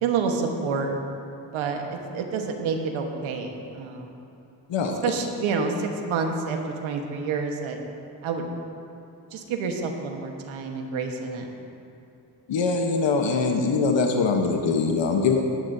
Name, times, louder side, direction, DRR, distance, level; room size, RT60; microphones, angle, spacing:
voice 1, 0.0-0.9 1.5-4.1 5.0-7.8 8.2-8.5 9.3-11.5, right 5 dB, 85° right, 3 dB, 1.4 m, -28 dB
voice 2, 12.5-15.4, left 4 dB, 70° left, 3 dB, 1.1 m, -23 dB
19.0 x 10.5 x 2.7 m, 2.8 s
supercardioid pair, 50°, 47 cm